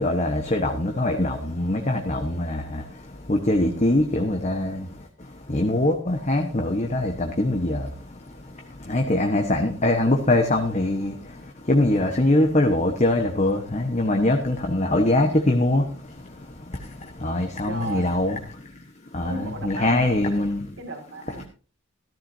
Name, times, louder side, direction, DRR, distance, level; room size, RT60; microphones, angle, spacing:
voice 1, 0.0-2.8 3.3-4.8 5.5-7.9 8.9-11.1 11.7-15.8 17.2-18.4 19.1-20.6, left 1 dB, 30° left, 3 dB, 1.1 m, -22 dB
voice 2, 17.7-18.1 19.2-20.5 20.8-21.4, right 2 dB, 60° right, 4 dB, 2.2 m, -35 dB
14.5 x 13.5 x 2.7 m, 0.37 s
head